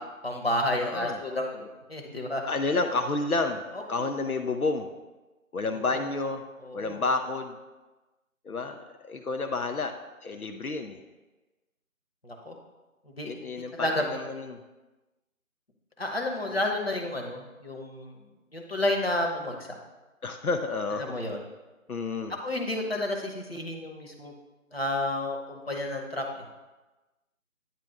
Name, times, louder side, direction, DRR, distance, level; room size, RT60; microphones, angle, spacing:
voice 1, 0.2-2.4 3.7-4.1 5.6-6.1 6.6-7.0 12.2-12.5 13.0-14.0 16.0-18.1 18.5-19.8 21.0-21.4 22.4-24.3 24.7-26.2, left 1 dB, 45° left, 1 dB, 1.1 m, -31 dB
voice 2, 0.8-1.2 2.4-4.9 5.5-6.4 6.7-7.6 8.4-9.9 10.2-11.0 13.2-14.6 20.2-21.0 21.9-22.4, left 3 dB, 85° left, 6 dB, 0.7 m, -30 dB
9.3 x 3.3 x 4.8 m, 1.1 s
figure-of-eight pair, 170°, 42 cm